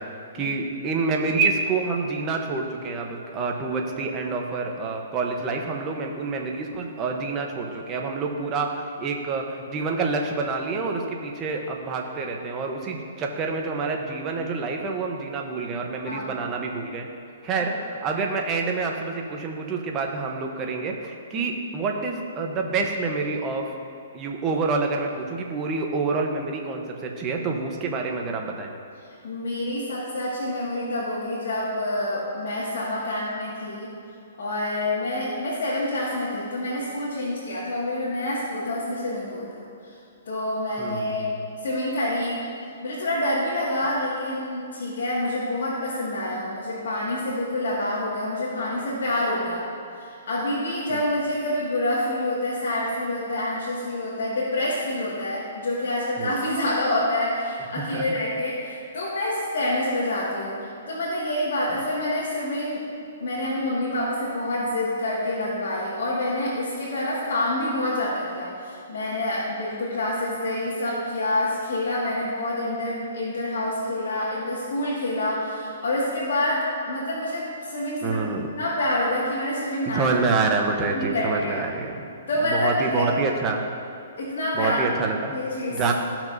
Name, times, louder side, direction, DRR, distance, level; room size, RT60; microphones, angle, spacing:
voice 1, 0.0-17.1 17.4-23.7 24.1-28.7 40.8-41.3 50.9-51.0 56.2-56.4 57.8-58.2 78.0-78.5 79.9-82.1 82.4-83.6 84.5-85.3 85.7-85.9, right 4 dB, 20° right, 2 dB, 0.8 m, -27 dB
voice 2, 16.1-16.4 21.4-21.5 29.2-33.9 34.4-39.9 40.3-41.3 41.6-42.4 42.8-49.6 50.0-62.8 63.2-78.2 78.5-80.1 80.7-81.6 82.3-83.1 84.2-85.0 85.3-85.9, left 1 dB, 70° left, -8 dB, 1.9 m, -27 dB
14.5 x 5.9 x 2.6 m, 2.5 s
hypercardioid pair, 155°, 0 cm